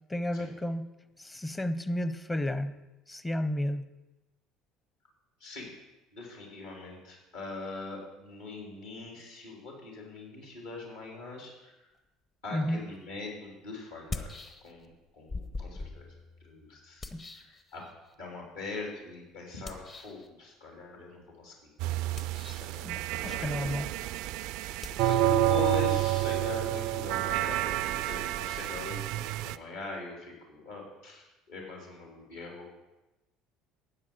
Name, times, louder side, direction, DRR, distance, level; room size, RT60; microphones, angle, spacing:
voice 1, 0.1-0.9 1.2-2.8 3.1-3.9 12.5-12.8 17.1-17.2 22.8-23.9, left 1 dB, 15° left, 12 dB, 0.8 m, -32 dB
voice 2, 6.1-11.9 12.4-14.3 14.6-16.1 16.4-17.1 17.3-17.8 18.2-21.5 22.5-23.9 24.6-32.7, left 3 dB, 65° left, -1 dB, 3.6 m, -42 dB
sound 1, 12.9-13.0 13.9-15.0 15.3-18.1 19.6-20.3 22.0-22.8 24.8-27.3, left 3 dB, 30° left, 1.0 m, -43 dB
sound 2, 21.8-29.6, right 15 dB, 55° right, 0.3 m, -29 dB
13.0 x 9.4 x 5.1 m, 1.0 s
figure-of-eight pair, 60°, 0 cm